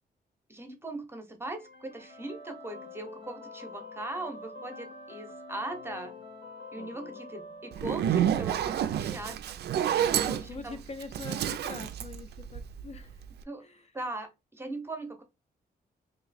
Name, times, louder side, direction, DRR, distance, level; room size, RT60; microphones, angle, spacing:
voice 1, 0.5-6.2 6.7-9.5 10.2-10.8 13.5-13.6 13.9-15.2, right 2 dB, 15° right, 0.7 m, -40 dB
sound 1, 1.5-8.5, left 3 dB, 75° left, 1.0 m, -46 dB
voice 2, 6.7-7.2 9.9-13.3 13.6-14.0, left 4 dB, 40° left, 0.4 m, -45 dB
Zipper (clothing), 7.7-13.0, right 10 dB, 80° right, 0.4 m, -29 dB
3.0 x 2.6 x 4.1 m
wide cardioid pair, 165°, 17 cm